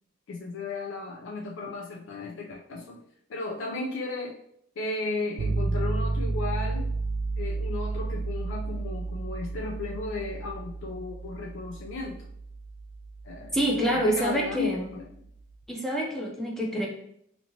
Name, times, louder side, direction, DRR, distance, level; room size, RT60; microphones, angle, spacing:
voice 1, 0.3-3.0 3.3-4.4 4.8-6.9 7.4-12.3 13.2-13.6 13.9-15.1, left 3 dB, 65° left, 0 dB, 0.4 m, -35 dB
sound 1, 5.4-15.3, right 3 dB, 70° right, 0.4 m, -32 dB
voice 2, 13.5-14.9 15.7-16.9, right 1 dB, ahead, -2 dB, 0.6 m, -27 dB
4.1 x 2.8 x 2.8 m, 0.70 s
head